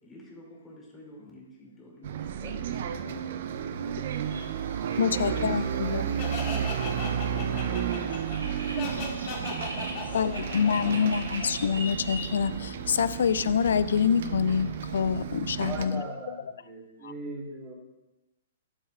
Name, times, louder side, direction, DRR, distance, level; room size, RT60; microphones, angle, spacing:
voice 1, 0.0-9.4 9.9-10.9, left 1 dB, 15° left, 2.5 m, -50 dB
Bus, 2.0-15.9, right 8 dB, 55° right, 0.5 m, -32 dB
sound 1, 4.1-15.0, right 1 dB, 85° right, 1.8 m, -43 dB
voice 2, 5.0-6.1 10.1-16.1 17.0-17.1, left 7 dB, 65° left, 0.4 m, -26 dB
Laughter, 6.2-11.8, left 3 dB, 45° left, 2.3 m, -37 dB
voice 3, 15.6-17.7, right 2 dB, 20° right, 2.3 m, -39 dB
12.0 x 7.1 x 2.4 m
figure-of-eight pair, 115°, 0 cm